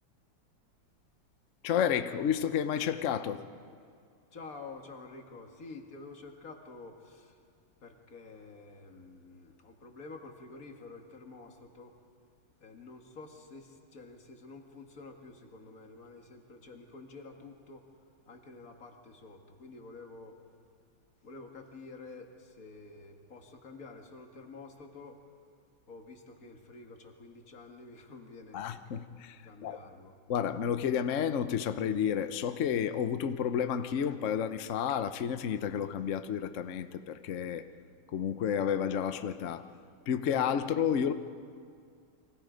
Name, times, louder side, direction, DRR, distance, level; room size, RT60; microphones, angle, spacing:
voice 1, 1.6-3.4 28.5-29.4 29.6-29.8 30.3-37.7 38.1-39.7 40.1-41.1, left 8 dB, 65° left, 10 dB, 0.7 m, -31 dB
voice 2, 4.3-7.4 7.8-12.0 12.6-17.9 18.2-20.4 21.2-25.2 25.9-28.6 29.4-30.2, left 3 dB, 40° left, 3 dB, 2.2 m, -49 dB
30.0 x 24.0 x 5.1 m, 2.3 s
omnidirectional pair, 2.4 m